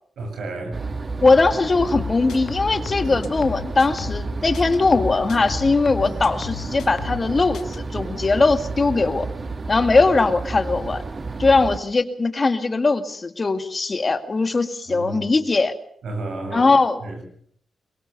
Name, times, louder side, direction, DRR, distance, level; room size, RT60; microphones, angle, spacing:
voice 1, 0.2-0.8 14.9-15.3 16.0-16.7 17.0-17.2, right 2 dB, 75° right, 4 dB, 7.8 m, -31 dB
sound 1, 0.7-11.8, right 3 dB, 45° right, 1.5 m, -31 dB
voice 2, 1.2-9.3 9.7-11.0 11.4-15.7 16.5-17.0, left 3 dB, 40° left, 10 dB, 2.1 m, -20 dB
sound 2, 1.9-4.3 4.5-7.3 7.5-7.8, left 8 dB, 75° left, 1.9 m, -34 dB
23.0 x 22.0 x 6.9 m, 0.62 s
supercardioid pair, 45°, 0 cm